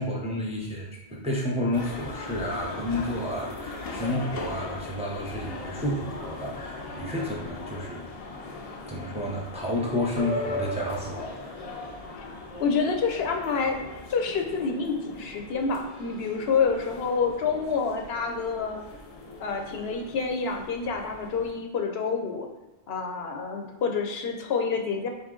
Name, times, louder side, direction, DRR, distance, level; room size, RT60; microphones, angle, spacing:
voice 1, 0.0-8.1 8.8-11.8, left 1 dB, 10° right, -2 dB, 0.5 m, -31 dB
sound 1, 1.7-21.5, left 2 dB, 50° left, 0.5 m, -39 dB
voice 2, 12.6-13.8 14.1-18.8 19.4-22.5 22.9-25.1, left 5 dB, 75° left, 3 dB, 0.9 m, -28 dB
4.1 x 2.9 x 3.6 m, 1.1 s
omnidirectional pair, 1.1 m